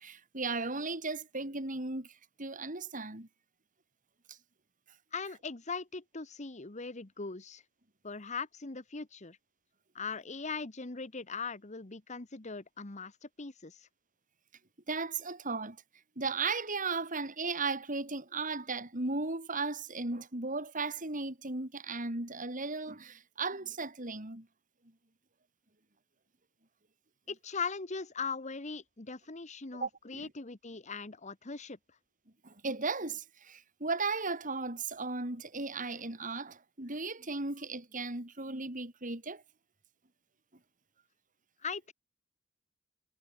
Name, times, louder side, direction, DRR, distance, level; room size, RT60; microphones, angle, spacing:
voice 1, 0.0-2.1 2.4-3.3 4.3-4.4 14.9-15.8 16.2-24.5 29.7-30.3 32.4-39.4, right 3 dB, 40° right, 3.4 m, -36 dB
voice 2, 5.1-7.6 8.0-9.4 9.9-13.9 27.3-31.8 41.6-41.9, left 4 dB, 35° left, 1.2 m, -40 dB
head